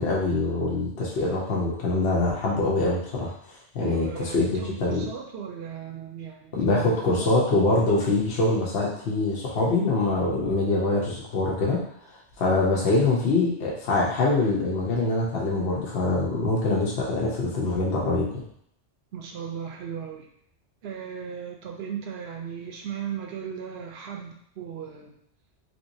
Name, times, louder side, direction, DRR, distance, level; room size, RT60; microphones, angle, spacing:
voice 1, 0.0-3.3 3.7-5.1 6.5-11.8 12.4-18.4, left 2 dB, 65° left, -5 dB, 1.0 m, -24 dB
voice 2, 3.8-7.8 19.1-20.3 20.8-25.1, right 8 dB, 65° right, 2 dB, 0.8 m, -37 dB
3.5 x 2.9 x 2.6 m, 0.67 s
omnidirectional pair, 1.2 m